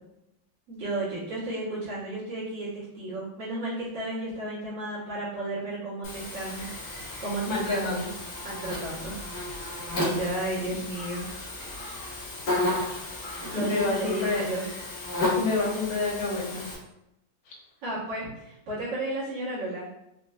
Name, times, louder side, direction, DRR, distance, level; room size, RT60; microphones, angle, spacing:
voice 1, 0.7-6.7 7.0-8.1 8.4-9.2 10.0-11.3 13.4-14.7 17.8-19.9, right 2 dB, 70° right, -10 dB, 2.4 m, -33 dB
Buzz, 6.0-16.7, left 2 dB, 50° left, 1.3 m, -33 dB
voice 2, 7.5-8.1 13.7-14.4 15.4-16.6 17.5-17.6, left 3 dB, 80° left, -4 dB, 1.8 m, -28 dB
5.1 x 2.6 x 2.2 m, 0.86 s
omnidirectional pair, 2.1 m